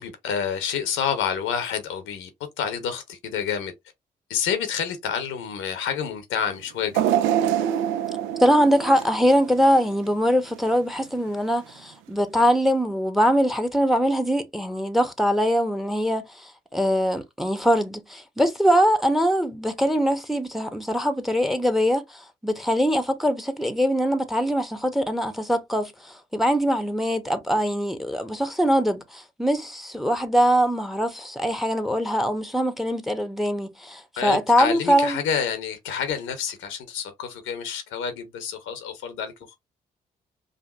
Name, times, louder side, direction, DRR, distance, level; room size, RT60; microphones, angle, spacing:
voice 1, 0.0-2.3 2.6-3.7 4.3-7.0 34.2-39.6, left 7 dB, 75° left, 0.8 m, -28 dB
sound 1, 6.9-10.1 10.5-10.7 11.7-11.8, right 10 dB, 70° right, 0.5 m, -25 dB
voice 2, 8.4-16.3 16.7-25.9 26.3-35.2, equal, ahead, 0.9 m, -22 dB
4.9 x 2.5 x 2.4 m
hypercardioid pair, 40°, 21 cm